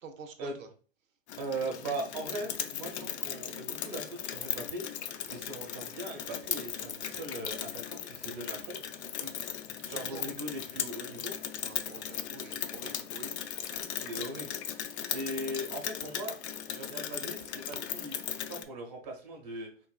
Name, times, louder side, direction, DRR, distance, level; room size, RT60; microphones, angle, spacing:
voice 1, 0.0-0.5 9.2-9.3 9.8-10.3 11.6-13.3, right 5 dB, 80° right, 7 dB, 0.8 m, -47 dB
Rain, 1.3-18.6, left 9 dB, 60° left, 0.5 m, -38 dB
voice 2, 1.4-8.8 9.9-11.3 13.7-16.4 16.7-19.7, right 1 dB, 35° right, 1 dB, 1.0 m, -40 dB
4.1 x 2.6 x 2.3 m, 0.40 s
hypercardioid pair, 130°, 39 cm